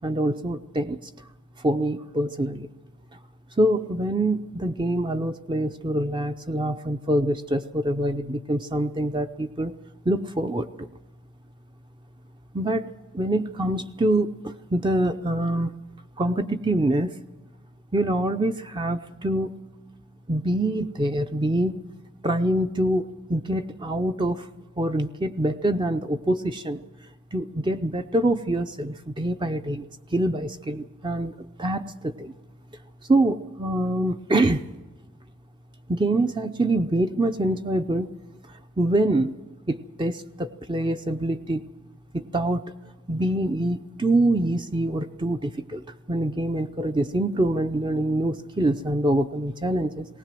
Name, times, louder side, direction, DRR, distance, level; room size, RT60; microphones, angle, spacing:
voice 1, 0.0-1.0 1.6-2.7 3.6-9.7 10.1-10.9 12.5-15.7 16.2-17.2 17.9-19.6 20.3-21.8 22.2-24.5 24.8-26.8 27.3-29.9 30.1-32.3 33.1-34.6 35.9-38.1 38.5-39.3 39.7-41.7 42.1-42.6 43.1-50.1, right 1 dB, 20° right, 8 dB, 0.6 m, -25 dB
19.5 x 18.5 x 7.6 m, 1.1 s
head